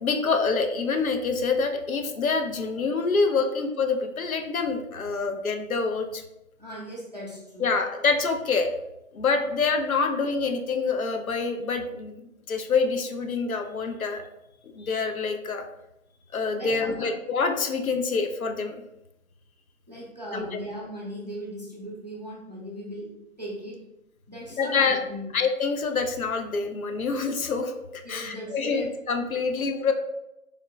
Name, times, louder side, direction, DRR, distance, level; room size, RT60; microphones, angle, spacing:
voice 1, 0.0-6.2 7.6-8.7 9.1-12.1 12.5-14.2 14.6-15.6 16.3-18.7 20.3-20.6 24.6-25.0 25.3-29.9, left 4 dB, 90° left, 5 dB, 0.7 m, -26 dB
voice 2, 6.6-7.7 16.6-17.1 19.9-23.1 23.4-23.8 24.3-25.3 28.0-28.9 29.4-29.9, equal, 30° right, -3 dB, 0.5 m, -38 dB
3.6 x 2.0 x 3.3 m, 0.89 s
figure-of-eight pair, 165°, 41 cm